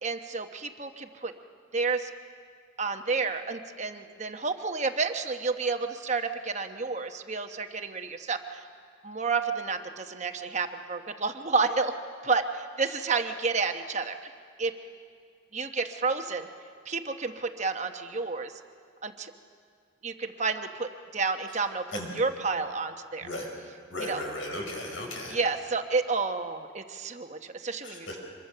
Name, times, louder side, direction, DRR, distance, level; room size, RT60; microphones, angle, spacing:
voice 1, 0.0-1.3 1.7-2.1 2.8-8.7 9.0-14.3 14.6-14.8 15.5-16.5 16.9-18.5 19.0-19.3 20.0-23.3 24.0-24.2 25.3-28.2, right 4 dB, 35° right, 6 dB, 1.0 m, -30 dB
voice 2, 23.9-25.4 27.8-28.2, left 1 dB, 80° left, 1 dB, 5.7 m, -36 dB
25.0 x 22.5 x 6.8 m, 2.2 s
head